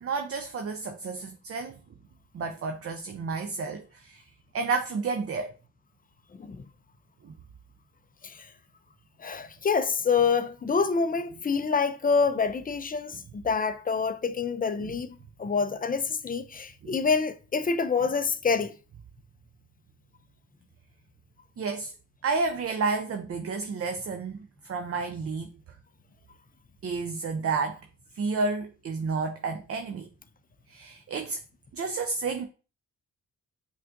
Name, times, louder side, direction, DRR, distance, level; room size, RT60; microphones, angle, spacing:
voice 1, 0.0-1.8 2.3-4.2 4.5-5.5 7.2-7.3 16.8-17.0 21.6-21.9 22.2-24.4 24.6-25.5 26.8-27.8 28.2-30.1 30.7-31.4 31.7-32.4, right 4 dB, 35° right, 0.5 m, -31 dB
voice 2, 6.3-6.6 8.2-8.5 9.2-18.7, left 5 dB, 25° left, 0.4 m, -27 dB
5.5 x 2.3 x 2.6 m
supercardioid pair, 45°, 40 cm